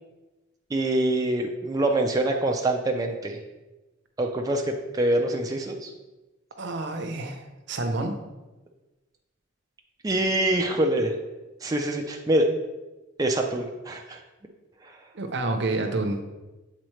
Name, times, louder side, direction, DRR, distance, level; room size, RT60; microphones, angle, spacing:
voice 1, 0.7-3.4 4.2-5.9 10.0-11.1 11.6-12.5 13.2-14.2 14.8-15.0, right 1 dB, 20° right, 2 dB, 0.4 m, -25 dB
voice 2, 6.6-8.2 15.1-16.2, right 2 dB, 60° right, 6 dB, 0.7 m, -29 dB
7.6 x 3.9 x 3.1 m, 1.1 s
head